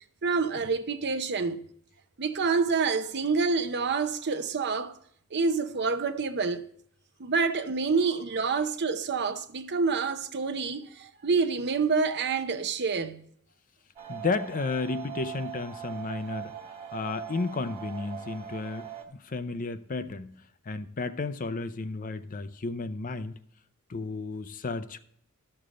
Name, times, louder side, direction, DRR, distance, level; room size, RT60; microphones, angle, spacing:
voice 1, 0.2-1.6 2.2-5.0 5.3-6.6 7.2-13.2, right 4 dB, 50° right, 0.7 m, -27 dB
sound 1, 14.0-19.0, right 10 dB, 30° right, 1.8 m, -41 dB
voice 2, 14.1-16.6 16.9-20.3 20.7-23.4 23.9-25.0, left 3 dB, 40° left, 0.5 m, -33 dB
12.5 x 6.8 x 3.7 m
head